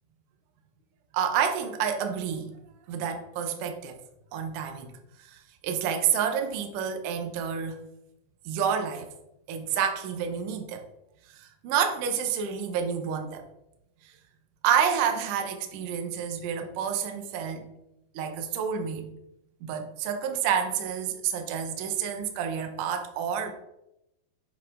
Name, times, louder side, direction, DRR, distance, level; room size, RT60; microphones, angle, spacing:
voice 1, 1.1-2.5 2.9-4.0 4.3-4.9 5.2-7.8 8.5-9.1 9.5-10.8 11.3-13.4 14.6-17.6 18.2-19.1 19.6-23.5, right 8 dB, 85° right, 5 dB, 1.8 m, -29 dB
7.3 x 4.4 x 3.6 m, 0.86 s
omnidirectional pair, 4.8 m